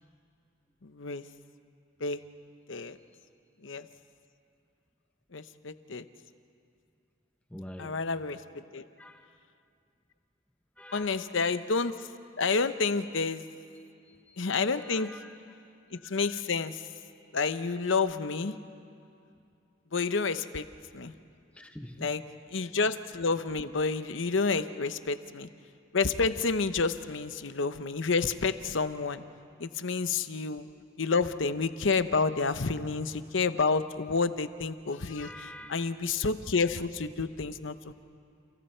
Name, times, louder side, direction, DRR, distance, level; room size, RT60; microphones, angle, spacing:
voice 1, 0.8-1.2 2.0-2.2 2.7-3.0 3.6-3.8 5.3-6.0 7.8-8.4 8.7-8.8 10.9-11.9 12.4-13.4 14.4-15.1 15.9-16.8 17.3-18.5 19.9-20.6 20.9-21.1 22.0-22.2 22.5-25.5 25.9-29.2 29.6-30.7 31.0-37.9, left 4 dB, 70° left, 11 dB, 0.8 m, -29 dB
voice 2, 7.5-8.0 9.0-9.3 10.8-11.3 14.1-14.4 14.8-15.4 20.2-20.3 21.5-22.1 35.2-35.9, left 1 dB, 5° left, 5 dB, 0.7 m, -46 dB
30.0 x 29.5 x 4.5 m, 2.5 s
head